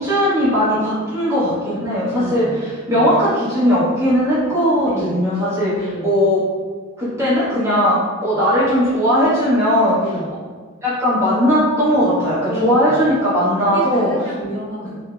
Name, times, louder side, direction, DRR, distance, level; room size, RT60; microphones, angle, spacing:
voice 1, 0.0-2.5 2.9-5.7 6.0-6.4 7.0-8.0 8.2-10.0 10.8-14.1, equal, 15° right, -11 dB, 0.7 m, -18 dB
voice 2, 2.1-3.3 4.8-5.3 5.7-6.3 10.0-10.4 12.4-13.1 13.6-15.0, right 1 dB, 45° left, -12 dB, 1.4 m, -31 dB
2.8 x 2.6 x 2.3 m, 1.5 s
head